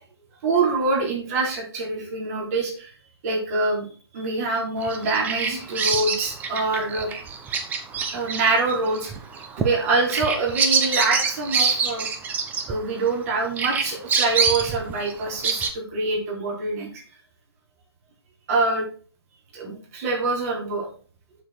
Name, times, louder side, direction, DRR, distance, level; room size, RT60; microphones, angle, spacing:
voice 1, 0.4-2.9 3.2-3.9 4.1-7.1 8.1-9.1 9.6-12.1 12.7-16.9 18.5-18.9 19.5-20.9, right 3 dB, 35° right, -1 dB, 4.2 m, -25 dB
Bird vocalization bird call bird song, 4.8-13.2 13.6-15.7, right 5 dB, 10° right, 0.9 m, -26 dB
7.6 x 7.0 x 4.5 m, 0.40 s
figure-of-eight pair, 135°, 14 cm